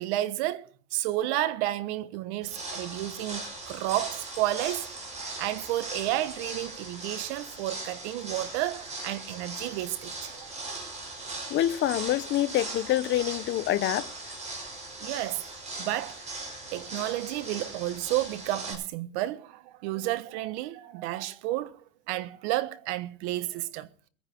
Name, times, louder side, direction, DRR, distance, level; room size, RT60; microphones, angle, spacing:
voice 1, 0.0-10.5 15.0-15.4 15.8-16.3 16.7-21.8 22.1-23.9, right 15 dB, 60° right, 1.3 m, -31 dB
sound 1, 2.4-18.7, right 2 dB, 15° right, 5.8 m, -39 dB
voice 2, 11.5-14.1, left 13 dB, 30° left, 0.8 m, -26 dB
22.0 x 9.9 x 4.5 m
supercardioid pair, 150°, 38 cm